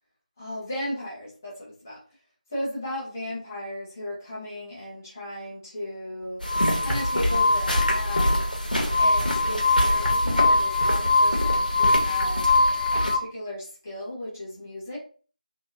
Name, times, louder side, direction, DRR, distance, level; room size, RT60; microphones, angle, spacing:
voice 1, 0.4-2.0 2.5-6.4 6.8-8.5 9.0-12.4 12.9-15.0, left 1 dB, 20° left, -6 dB, 0.5 m, -35 dB
sound 1, 6.4-13.2, equal, 85° left, 0.8 m, -27 dB
Glass, 6.5-13.2, left 3 dB, 90° right, 0.8 m, -23 dB
2.6 x 2.1 x 2.4 m, 0.39 s
figure-of-eight pair, 165°, 5 cm